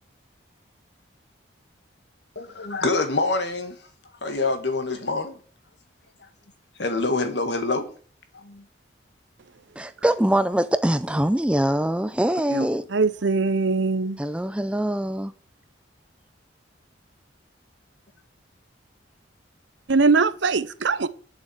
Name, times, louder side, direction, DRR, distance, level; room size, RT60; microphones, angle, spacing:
voice 1, 2.4-3.8 4.2-5.4 6.8-7.9 8.3-8.6, left 3 dB, 65° left, 1.9 m, -26 dB
voice 2, 9.8-12.8 14.2-15.3, right 1 dB, 5° right, 0.4 m, -23 dB
voice 3, 12.5-14.2 19.9-21.1, right 4 dB, 70° right, 0.7 m, -22 dB
8.9 x 7.2 x 7.9 m
head